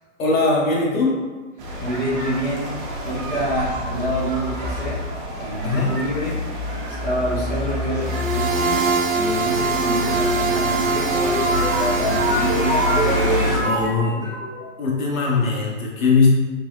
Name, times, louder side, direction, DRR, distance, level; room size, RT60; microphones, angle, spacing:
voice 1, 0.2-1.2 5.6-6.0 9.7-10.1 13.5-14.3 14.8-16.3, left 4 dB, 80° left, -4 dB, 1.4 m, -21 dB
sound 1, 1.6-13.6, left 1 dB, 30° right, 0.7 m, -28 dB
voice 2, 1.8-5.0 5.4-6.4 6.9-14.3, equal, 5° left, -12 dB, 0.4 m, -28 dB
sound 2, 8.0-13.8, right 4 dB, 80° right, 0.6 m, -23 dB
sound 3, 10.6-14.8, right 1 dB, 20° left, 0.8 m, -25 dB
3.7 x 2.6 x 3.4 m, 1.3 s
hypercardioid pair, 140°, 40 cm